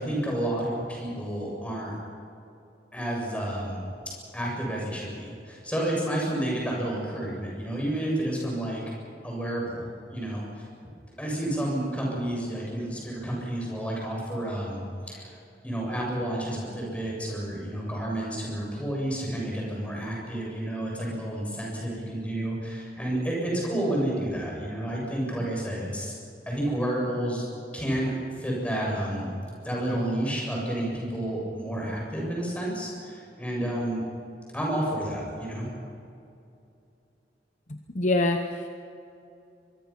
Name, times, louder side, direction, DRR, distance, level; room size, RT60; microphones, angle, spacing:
voice 1, 0.0-1.9 2.9-3.8 4.3-8.8 9.2-10.7 11.2-15.4 15.6-26.1 26.5-27.4 27.7-28.1 28.4-29.3 29.6-34.0 34.5-35.7, right 1 dB, 5° left, -3 dB, 7.1 m, -30 dB
voice 2, 37.7-38.7, left 2 dB, 40° left, 5 dB, 1.0 m, -26 dB
24.0 x 23.0 x 5.9 m, 2.6 s
head